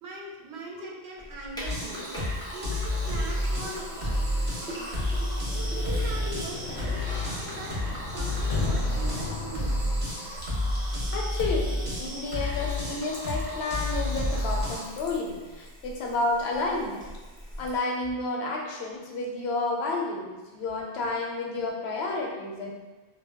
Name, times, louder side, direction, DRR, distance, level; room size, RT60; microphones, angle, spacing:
voice 1, 0.0-2.3 2.5-4.2 4.6-5.0 5.5-7.0 7.4-9.8, right 2 dB, 90° right, -2 dB, 0.8 m, -41 dB
Sink (filling or washing), 1.2-17.8, equal, 5° left, 0.4 m, -43 dB
sound 1, 1.6-14.8, left 1 dB, 45° right, 0.8 m, -30 dB
Sliding door, 5.3-10.2, left 3 dB, 60° left, 0.6 m, -36 dB
voice 2, 11.1-17.0 17.6-22.7, left 3 dB, 80° left, -1 dB, 0.8 m, -31 dB
2.2 x 2.0 x 3.5 m, 1.3 s
omnidirectional pair, 1.1 m